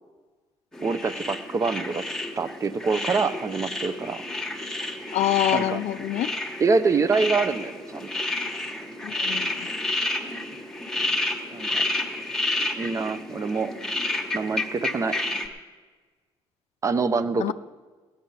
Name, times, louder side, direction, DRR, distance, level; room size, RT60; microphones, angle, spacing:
sound 1, 0.7-15.5, left 2 dB, 5° left, 1.3 m, -30 dB
voice 1, 0.8-2.0 2.4-4.2 5.5-5.8 6.6-8.1 11.5-11.8 12.7-13.7 14.3-15.2 16.8-17.5, right 4 dB, 30° right, 11 dB, 0.7 m, -25 dB
voice 2, 5.1-6.3 9.0-9.7 17.4-17.5, left 13 dB, 75° left, 15 dB, 0.5 m, -26 dB
16.5 x 10.5 x 5.6 m, 1.4 s
cardioid pair, 155°, 11 cm